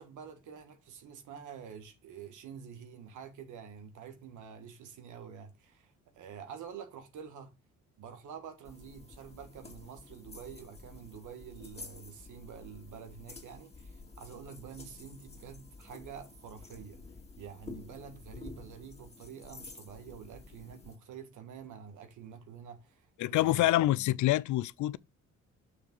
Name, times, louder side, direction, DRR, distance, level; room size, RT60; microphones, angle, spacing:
voice 1, 0.0-7.5 8.0-17.0 17.4-23.7, right 7 dB, 80° right, 1.6 m, -48 dB
sound 1, 8.6-21.0, left 3 dB, 20° left, 2.3 m, -50 dB
voice 2, 23.2-25.0, left 15 dB, 75° left, 0.5 m, -26 dB
6.7 x 3.4 x 5.9 m
cardioid pair, 90°, 30 cm